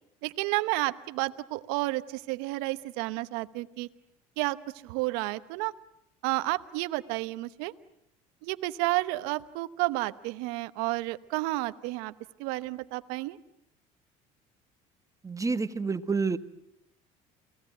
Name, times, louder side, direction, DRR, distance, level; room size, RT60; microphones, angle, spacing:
voice 1, 0.2-3.9 4.4-4.6 4.8-5.7 6.2-7.7 8.4-12.1 12.4-13.4, right 20 dB, 75° right, 12 dB, 1.0 m, -31 dB
voice 2, 15.2-16.4, right 4 dB, 20° right, 11 dB, 1.5 m, -28 dB
30.0 x 19.5 x 9.1 m, 0.78 s
supercardioid pair, 80°, 16 cm